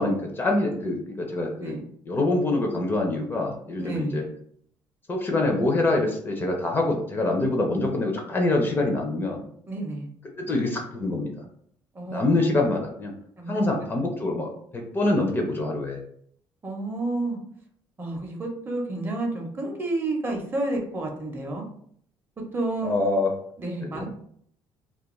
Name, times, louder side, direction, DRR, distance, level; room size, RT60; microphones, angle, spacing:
voice 1, 0.0-1.7 2.1-4.2 5.1-9.4 10.4-11.3 12.1-13.1 13.5-16.0 22.8-23.3 23.8-24.1, left 2 dB, 25° left, 2 dB, 0.4 m, -25 dB
voice 2, 3.8-4.2 9.7-10.1 11.9-12.6 13.4-13.6 16.6-17.4 18.0-21.6 22.5-23.0 23.6-24.1, right 2 dB, 25° right, 1 dB, 0.6 m, -30 dB
2.3 x 2.2 x 2.9 m, 0.64 s
cardioid pair, 135°, 9 cm